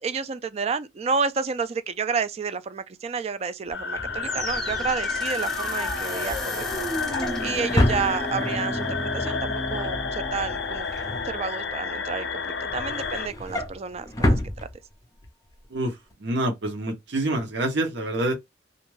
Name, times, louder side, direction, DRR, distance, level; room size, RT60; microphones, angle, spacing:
voice 1, 0.0-6.9 7.4-14.4, right 5 dB, 35° right, 0.3 m, -30 dB
sound 1, 3.7-13.3, left 5 dB, 75° left, 0.5 m, -31 dB
Drawer open or close, 3.7-8.7 9.1-9.4 9.7-11.9 12.3-15.3 15.6-15.8 16.1-16.2, left 1 dB, 20° left, 0.5 m, -30 dB
sound 2, 4.2-13.4, equal, 5° left, 0.9 m, -34 dB
voice 2, 15.7-18.3, right 1 dB, 75° right, 0.8 m, -27 dB
2.4 x 2.2 x 3.1 m
head